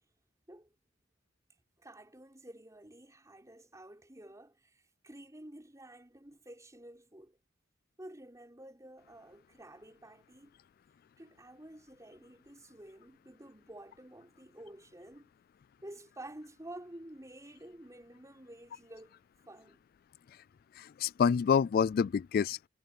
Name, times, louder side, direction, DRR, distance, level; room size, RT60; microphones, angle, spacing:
voice 1, 1.8-7.4 8.0-10.6 11.2-15.3 15.8-19.2 19.5-19.8, right 1 dB, 15° right, 4.8 m, -51 dB
voice 2, 20.8-22.7, left 6 dB, 50° left, 0.3 m, -27 dB
head